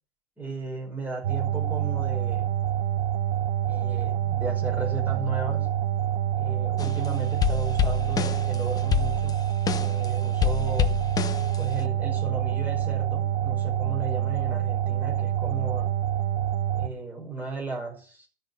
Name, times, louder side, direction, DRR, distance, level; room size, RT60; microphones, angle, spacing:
voice 1, 0.4-2.5 3.7-5.7 6.4-9.4 9.7-10.9 11.6-15.9 16.7-18.3, right 3 dB, 5° right, 5.7 m, -35 dB
sound 1, 1.2-16.9, right 11 dB, 45° right, 1.0 m, -27 dB
sound 2, 5.1-6.9, right 4 dB, 85° right, 1.9 m, -40 dB
sound 3, 6.8-7.1 7.4-10.1 10.4-11.8, left 9 dB, 10° left, 0.6 m, -27 dB
13.0 x 6.0 x 9.6 m
hypercardioid pair, 120°, 31 cm